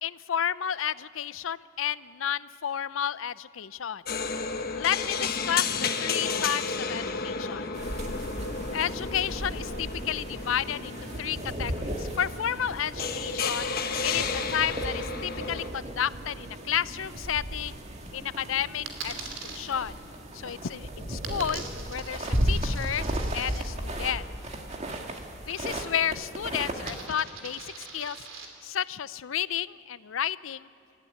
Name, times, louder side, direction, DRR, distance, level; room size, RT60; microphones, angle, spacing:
voice 1, 0.0-4.0 4.7-7.7 8.7-13.7 14.0-17.8 18.1-19.9 20.3-21.6 21.9-23.1 23.3-24.2 25.5-28.2 28.6-30.7, left 9 dB, 80° left, 17 dB, 0.5 m, -31 dB
sound 1, 4.0-15.7, left 5 dB, 50° left, 1.2 m, -32 dB
sound 2, 7.7-27.0, right 1 dB, 35° right, 2.0 m, -35 dB
Coin (dropping), 18.9-19.6 21.2-23.6 25.5-26.1 26.4-28.5, right 5 dB, 75° right, 3.1 m, -42 dB
26.5 x 14.5 x 9.6 m, 2.6 s
head